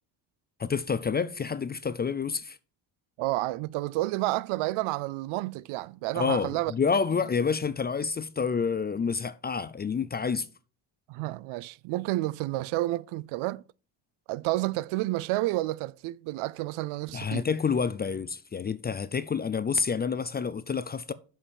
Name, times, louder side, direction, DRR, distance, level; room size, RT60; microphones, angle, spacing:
voice 1, 0.6-2.6 6.1-10.5 17.1-21.1, left 5 dB, 25° left, 0.3 m, -28 dB
voice 2, 3.2-6.7 11.1-13.6 14.3-17.4, right 18 dB, 80° right, 0.5 m, -30 dB
6.5 x 5.7 x 7.2 m
cardioid pair, 115°, 48 cm